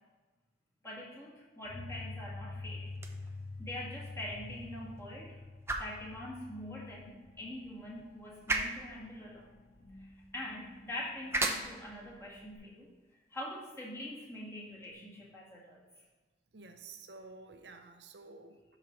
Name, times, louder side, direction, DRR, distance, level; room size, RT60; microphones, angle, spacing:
voice 1, 0.8-2.9 3.6-5.4 5.7-9.5 10.0-12.9 13.3-15.8, left 1 dB, 15° left, -5 dB, 1.8 m, -44 dB
sound 1, 1.6-12.6, left 2 dB, 35° left, 1.7 m, -48 dB
sound 2, 2.9-14.9, right 2 dB, 15° right, 0.6 m, -41 dB
voice 2, 16.5-18.8, right 3 dB, 75° right, 6 dB, 0.7 m, -51 dB
12.0 x 4.8 x 3.1 m, 1.3 s
head